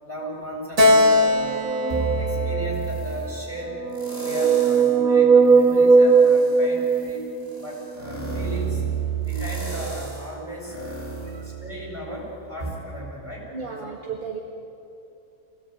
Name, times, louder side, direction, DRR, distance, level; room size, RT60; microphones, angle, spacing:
voice 1, 0.0-1.7 2.2-3.7 4.2-7.2 7.6-8.8 9.2-10.7 11.4-13.9, equal, 10° right, -4 dB, 8.0 m, -36 dB
Keyboard (musical), 0.8-4.2, left 2 dB, 55° right, 2.2 m, -22 dB
sound 1, 1.2-2.9 3.7-7.6, right 5 dB, 75° right, 1.3 m, -19 dB
sound 2, 1.9-3.3 3.9-5.0 5.4-12.1 12.6-12.7, right 6 dB, 30° left, 5.4 m, -31 dB
voice 2, 11.1-11.5 13.5-14.4, right 6 dB, 35° right, 0 dB, 2.0 m, -35 dB
24.5 x 18.0 x 9.2 m, 2.8 s
omnidirectional pair, 1.5 m